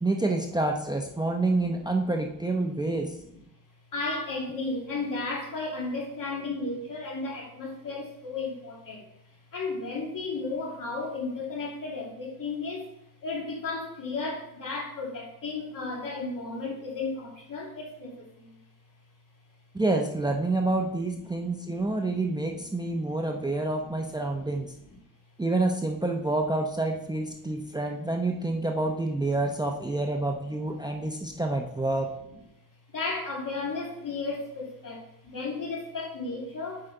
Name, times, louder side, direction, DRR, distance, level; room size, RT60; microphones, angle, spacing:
voice 1, 0.0-3.1 19.7-24.7 25.4-32.1, right 2 dB, 10° right, 2 dB, 0.8 m, -28 dB
voice 2, 3.9-9.0 9.5-12.9 13.2-18.6 21.4-21.9 22.3-23.4 24.4-24.5 24.9-25.0 27.4-27.6 28.5-28.6 30.6-31.4 32.9-36.9, left 3 dB, 55° left, -2 dB, 2.6 m, -34 dB
7.7 x 5.1 x 4.6 m, 0.81 s
cardioid pair, 105°, 39 cm